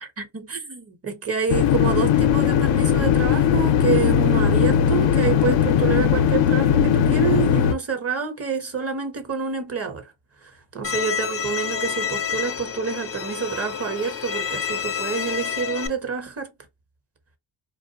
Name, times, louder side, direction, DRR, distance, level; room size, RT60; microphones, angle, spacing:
voice 1, 0.2-10.1 10.4-16.5, right 6 dB, 30° right, 1.0 m, -28 dB
sound 1, 1.5-7.7, left 8 dB, 85° left, 0.6 m, -19 dB
Bowed string instrument, 10.8-15.9, left 7 dB, 30° left, 0.5 m, -29 dB
2.5 x 2.1 x 2.8 m
supercardioid pair, 65°, 45 cm